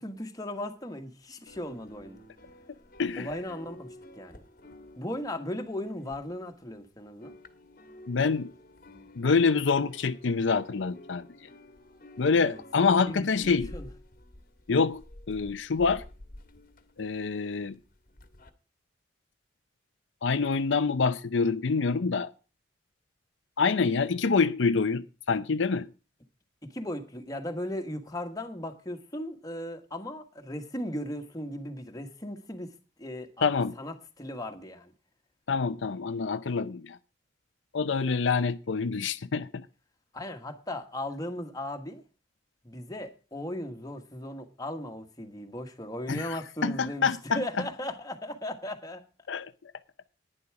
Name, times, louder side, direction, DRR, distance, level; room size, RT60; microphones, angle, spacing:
voice 1, 0.0-2.2 3.2-4.4 5.0-7.3 12.4-13.9 26.7-32.7 33.0-33.4 33.8-34.9 40.1-42.0 42.6-49.0, left 1 dB, 20° left, 1.4 m, -37 dB
sound 1, 1.5-6.8 7.0-18.5, left 1 dB, 50° left, 1.4 m, -50 dB
voice 2, 8.1-8.5 9.2-11.2 12.2-13.7 14.7-15.0 15.3-16.0 17.0-17.8 20.2-22.3 23.6-25.9 33.4-33.8 35.5-37.0 37.7-39.6 46.1-47.4 49.3-49.5, left 5 dB, 80° left, 0.6 m, -26 dB
11.0 x 10.0 x 4.8 m
head